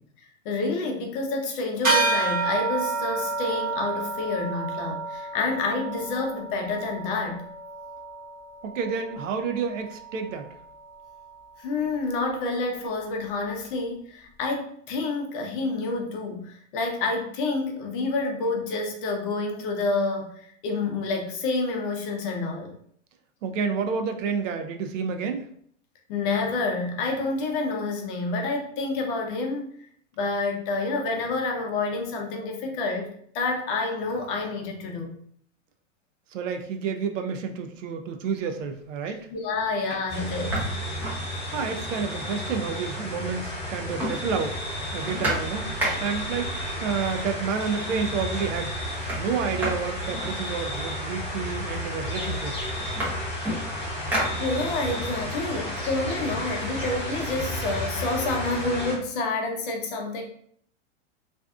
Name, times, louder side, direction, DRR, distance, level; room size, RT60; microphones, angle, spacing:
voice 1, 0.4-7.4 11.6-22.7 26.1-29.7 30.2-33.1 33.3-35.1 39.0-40.8 54.4-60.2, left 3 dB, 45° left, 2 dB, 0.6 m, -28 dB
sound 1, 1.8-11.6, right 3 dB, 25° right, 0.9 m, -30 dB
voice 2, 8.6-10.5 23.4-25.4 36.3-39.3 41.5-44.6 44.9-48.7 49.2-52.6, right 6 dB, 75° right, 6 dB, 0.6 m, -30 dB
sound 2, 38.4-38.8 39.3-39.4 39.8-41.8 42.2-42.3 42.5-43.4 43.6-46.4 47.3-47.4 47.8-48.3 48.5-50.9 51.7-51.8 52.1-55.0 55.4-57.1, right 1 dB, 5° right, 0.6 m, -34 dB
sound 3, 40.1-58.9, equal, 15° left, 0.9 m, -32 dB
2.5 x 2.3 x 2.3 m, 0.64 s
hypercardioid pair, 135°, 38 cm